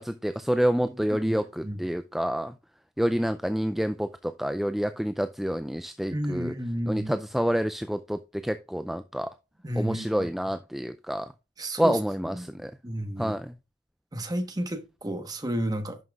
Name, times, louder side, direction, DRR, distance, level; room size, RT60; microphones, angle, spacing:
voice 1, 0.0-2.5 3.0-6.5 6.9-9.3 9.8-11.3 11.8-12.7 13.2-13.5, equal, ahead, 0.3 m, -28 dB
voice 2, 1.1-1.8 6.1-7.1 9.6-10.3 11.6-12.0 12.2-12.4 12.8-13.4 14.1-16.0, right 1 dB, 20° right, 1.1 m, -32 dB
11.0 x 5.7 x 2.4 m
head